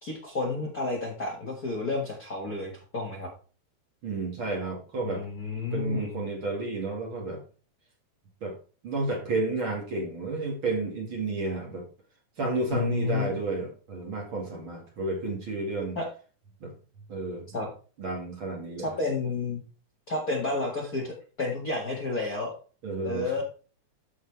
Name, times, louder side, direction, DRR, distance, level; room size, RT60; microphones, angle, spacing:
voice 1, 0.0-3.3 5.0-6.2 12.7-13.3 16.0-16.1 17.5-17.7 18.8-19.6 20.1-22.5 23.0-23.4, left 3 dB, 40° left, -2 dB, 1.6 m, -31 dB
voice 2, 4.0-5.3 5.7-7.4 8.4-8.6 8.8-11.8 12.4-16.0 16.6-16.7 17.1-17.5 18.0-18.9 22.8-23.4, right 3 dB, 45° right, 0 dB, 2.5 m, -31 dB
13.5 x 5.0 x 3.3 m, 0.37 s
omnidirectional pair, 3.6 m